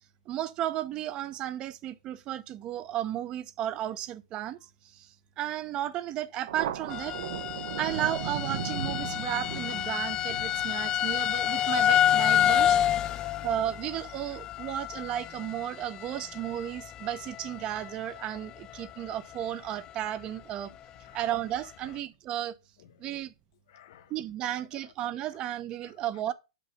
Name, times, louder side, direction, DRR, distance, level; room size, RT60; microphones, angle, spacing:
voice 1, 0.3-4.6 4.9-5.1 5.4-7.2 7.8-12.8 13.4-20.7 21.1-22.5 23.0-23.3 24.1-26.3, right 12 dB, 30° right, 0.7 m, -34 dB
Thunder, 6.5-13.5, right 9 dB, 65° right, 1.0 m, -38 dB
sound 1, 6.9-17.6 17.8-18.4 18.8-18.9 19.3-19.4, left 11 dB, 25° left, 0.3 m, -28 dB
voice 2, 10.4-11.2 12.6-13.5 14.6-14.8 21.0-21.2 23.7-24.1, left 11 dB, 65° left, 1.0 m, -53 dB
6.5 x 5.5 x 5.1 m
hypercardioid pair, 140°, 3 cm